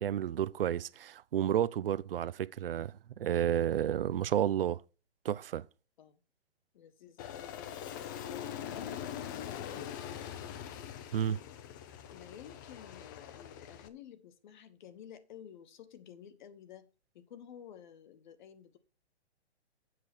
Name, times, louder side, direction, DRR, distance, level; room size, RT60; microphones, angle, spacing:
voice 1, 0.0-4.8 5.2-5.6 11.1-11.4, right 10 dB, 60° right, 0.6 m, -31 dB
voice 2, 6.7-10.3 11.3-11.8 12.1-18.8, left 9 dB, 45° left, 1.2 m, -52 dB
Aircraft, 7.2-13.9, left 9 dB, 20° left, 0.5 m, -43 dB
7.7 x 6.8 x 6.1 m
hypercardioid pair, 145°, 33 cm